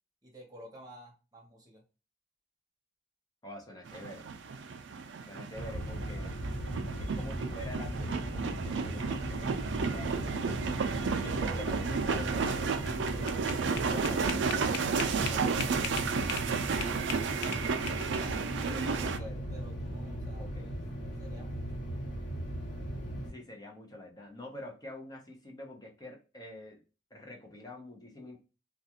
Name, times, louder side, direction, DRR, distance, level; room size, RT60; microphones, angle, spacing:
voice 1, 0.2-1.8 17.2-20.8 21.2-22.0, right 1 dB, 20° right, 0 dB, 0.9 m, -52 dB
voice 2, 3.4-4.3 5.3-6.4 7.0-9.6 9.9-10.1 11.1-17.1 18.8-19.4 20.4-20.7 23.3-26.8 27.1-28.4, left 1 dB, 20° left, 1 dB, 0.8 m, -46 dB
sound 1, 3.9-19.2, right 5 dB, 75° right, 0.4 m, -33 dB
sound 2, 5.5-23.3, right 1 dB, 80° left, 1.1 m, -38 dB
sound 3, 12.6-16.5 16.8-18.3, left 7 dB, 60° left, 0.4 m, -39 dB
2.3 x 2.3 x 2.8 m, 0.32 s
head